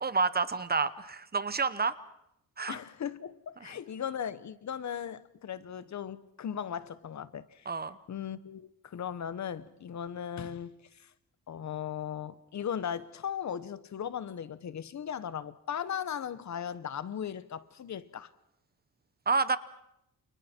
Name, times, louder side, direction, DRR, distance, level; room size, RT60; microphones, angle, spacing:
voice 1, 0.0-1.9 2.6-2.8 3.6-3.7 7.7-8.0 19.3-19.6, right 4 dB, 25° right, 0.9 m, -29 dB
voice 2, 2.7-7.7 8.1-11.1 11.5-18.3, left 8 dB, 50° left, 1.1 m, -37 dB
29.5 x 29.0 x 4.5 m
wide cardioid pair, 150°, 36 cm